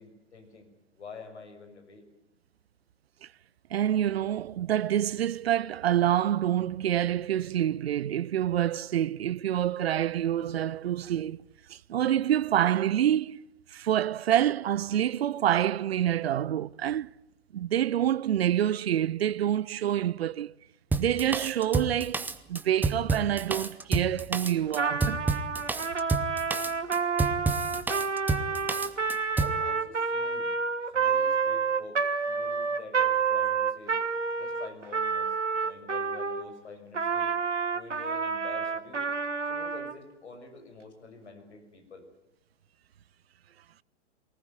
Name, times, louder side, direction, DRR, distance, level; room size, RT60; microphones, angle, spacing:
voice 1, 0.0-2.0 28.3-28.7 29.4-30.5 30.9-34.0 34.4-37.4 37.7-39.1 39.5-42.1, left 4 dB, 70° left, 6.6 m, -47 dB
voice 2, 3.7-11.4 11.7-13.4 13.7-17.1 17.5-20.5 21.0-25.2, right 11 dB, 55° right, 0.8 m, -27 dB
Drum kit, 20.9-29.6, right 3 dB, 5° right, 0.8 m, -29 dB
Trumpet, 24.7-36.5 36.9-39.9, right 5 dB, 80° right, 1.8 m, -29 dB
24.0 x 19.0 x 9.3 m
figure-of-eight pair, 110°, 36 cm